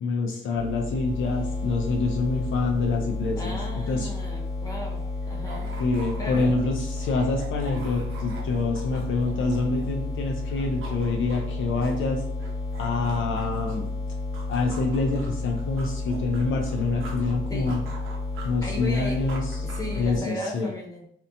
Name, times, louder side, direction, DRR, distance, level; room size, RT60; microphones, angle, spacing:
voice 1, 0.0-4.1 5.8-12.2 12.8-13.9 14.5-17.8 18.4-19.7 20.0-20.7, left 3 dB, 70° left, 1 dB, 0.4 m, -26 dB
sound 1, 0.5-20.2, left 2 dB, 45° left, 1.2 m, -31 dB
voice 2, 3.3-5.7 6.2-6.5 17.5-17.8 18.6-19.2 19.6-21.1, left 1 dB, 15° left, -2 dB, 0.8 m, -36 dB
sound 2, 4.6-10.1 10.4-13.9 14.3-17.3 17.7-20.4, right 3 dB, 80° right, 0.6 m, -45 dB
2.8 x 2.1 x 2.6 m, 0.69 s
cardioid pair, 85°, 21 cm